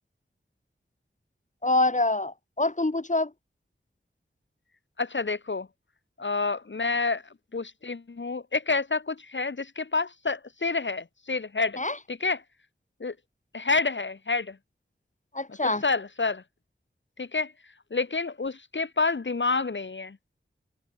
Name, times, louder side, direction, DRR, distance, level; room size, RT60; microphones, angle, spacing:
voice 1, 1.6-3.3 11.8-12.0 15.3-15.8, left 2 dB, 35° left, 3.5 m, -25 dB
voice 2, 5.0-5.7 6.2-7.2 7.5-11.8 12.1-12.4 13.0-13.1 13.5-14.6 15.6-16.4 17.2-17.5 17.9-20.2, left 4 dB, 60° left, 1.4 m, -28 dB
wide cardioid pair, 65°, 21 cm